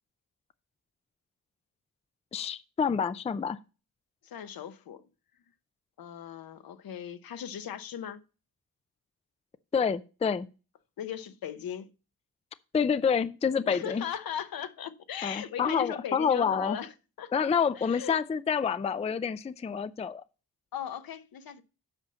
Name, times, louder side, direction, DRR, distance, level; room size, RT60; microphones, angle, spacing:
voice 1, 2.3-3.6 9.7-10.5 12.7-14.0 15.2-16.8 17.3-20.2, left 6 dB, 20° left, 0.4 m, -28 dB
voice 2, 4.2-5.1 6.0-8.2 11.0-11.9 13.6-18.2 20.7-21.6, left 9 dB, 70° left, 0.9 m, -38 dB
8.1 x 5.5 x 5.6 m
cardioid pair, 100°, 36 cm